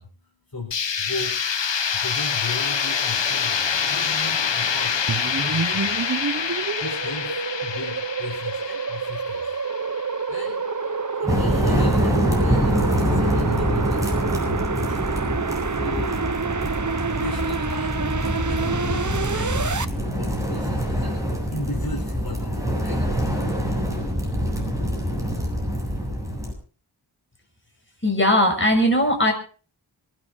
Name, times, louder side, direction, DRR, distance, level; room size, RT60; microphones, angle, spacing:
voice 1, 0.0-6.0 6.4-24.5, left 2 dB, 50° left, -1 dB, 4.4 m, -37 dB
sound 1, 0.7-10.5, left 6 dB, 70° left, 1.0 m, -26 dB
sound 2, 5.1-19.9, right 4 dB, 40° right, 1.0 m, -28 dB
sound 3, 11.3-26.5, equal, 5° right, 7.9 m, -25 dB
voice 2, 28.0-29.3, equal, 25° left, 2 dB, 6.5 m, -19 dB
26.5 x 9.9 x 4.0 m, 0.38 s
wide cardioid pair, 50°, 45 cm